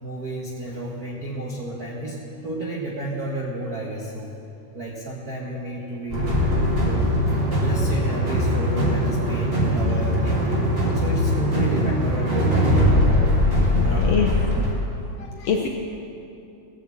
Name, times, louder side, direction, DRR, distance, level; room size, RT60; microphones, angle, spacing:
voice 1, 0.0-4.3 4.7-6.2 6.8-7.1 7.5-10.7 10.9-13.3 13.8-14.6, right 1 dB, 65° right, -3 dB, 0.9 m, -32 dB
sound 1, 6.1-14.7, equal, 20° right, 1.9 m, -21 dB
voice 2, 13.7-14.3 15.2-15.7, left 6 dB, 75° left, 2 dB, 1.5 m, -25 dB
16.5 x 7.1 x 7.4 m, 2.7 s
omnidirectional pair, 3.7 m